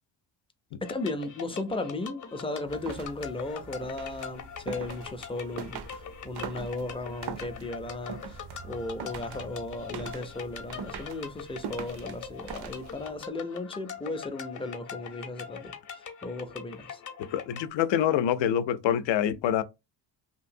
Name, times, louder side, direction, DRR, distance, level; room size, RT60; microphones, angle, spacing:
sound 1, 0.8-17.7, left 7 dB, 45° left, 0.7 m, -43 dB
voice 1, 0.8-8.4 8.6-17.0, left 2 dB, 15° left, 0.4 m, -36 dB
sound 2, 2.6-13.2, right 6 dB, 65° right, 0.6 m, -42 dB
voice 2, 17.3-19.6, left 10 dB, 80° left, 0.5 m, -26 dB
2.9 x 2.6 x 2.6 m
cardioid pair, 105°, 43 cm